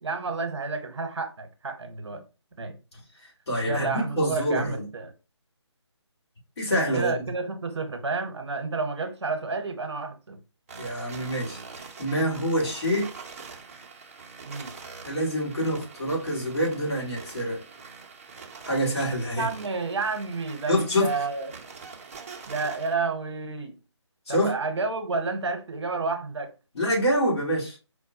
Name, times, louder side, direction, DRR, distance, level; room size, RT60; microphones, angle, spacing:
voice 1, 0.0-2.2 2.6-2.8 3.6-5.1 6.9-10.4 14.4-14.8 19.3-21.5 22.5-23.8 24.3-26.5, right 4 dB, 65° right, 0.8 m, -30 dB
voice 2, 3.5-4.9 6.6-7.2 10.8-13.1 15.0-17.6 18.6-19.5 20.7-21.1 24.3-24.6 26.7-27.8, equal, 60° left, 2.0 m, -26 dB
sound 1, 10.7-22.9, right 5 dB, 30° right, 0.5 m, -44 dB
4.7 x 2.2 x 2.7 m
figure-of-eight pair, 155°, 15 cm